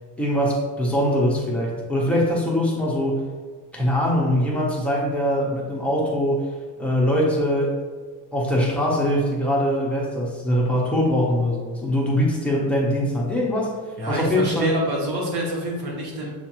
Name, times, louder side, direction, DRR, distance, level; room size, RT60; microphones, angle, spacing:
voice 1, 0.2-3.2 3.7-6.5 6.8-7.8 8.3-13.8 14.1-14.7, equal, 5° left, -4 dB, 0.6 m, -22 dB
voice 2, 14.0-16.3, right 1 dB, 60° right, -3 dB, 1.4 m, -27 dB
6.9 x 2.5 x 2.9 m, 1.5 s
cardioid pair, 175°, 43 cm